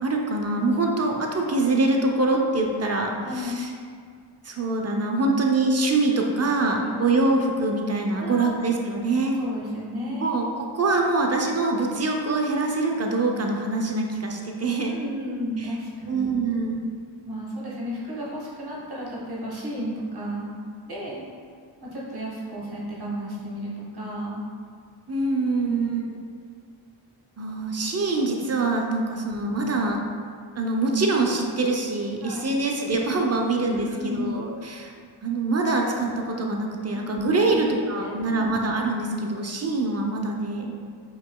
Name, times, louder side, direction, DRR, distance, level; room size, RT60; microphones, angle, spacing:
voice 1, 0.0-3.7 4.4-9.4 10.2-15.0 15.6-15.7 16.1-16.8 25.1-26.0 27.4-30.0 30.5-34.9 35.2-40.7, right 2 dB, 30° right, 1 dB, 0.5 m, -24 dB
voice 2, 3.2-3.7 6.8-7.0 8.2-8.6 9.4-10.3 14.9-16.2 17.3-20.5 20.9-21.2 21.8-24.4 25.6-25.8 32.2-32.4 33.8-34.3 36.9-37.0 37.4-37.6 38.0-38.5, equal, 50° right, -5 dB, 1.0 m, -33 dB
5.0 x 3.1 x 2.2 m, 2.1 s
cardioid pair, 55°, 48 cm